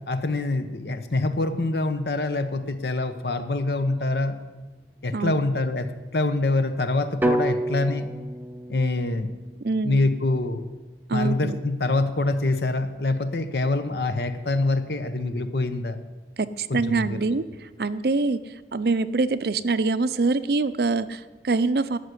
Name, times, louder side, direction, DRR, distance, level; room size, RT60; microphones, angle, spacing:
voice 1, 0.1-4.3 5.0-8.1 8.7-9.3 9.8-10.7 11.1-16.0 16.7-17.4, left 2 dB, 65° left, 10 dB, 0.9 m, -25 dB
sound 1, 7.2-11.3, right 1 dB, 10° right, 0.6 m, -30 dB
voice 2, 9.6-10.0 11.1-11.6 16.4-17.4 17.8-18.4 18.7-22.0, right 3 dB, 60° right, 14 dB, 0.5 m, -24 dB
12.5 x 6.5 x 9.6 m, 1.2 s
head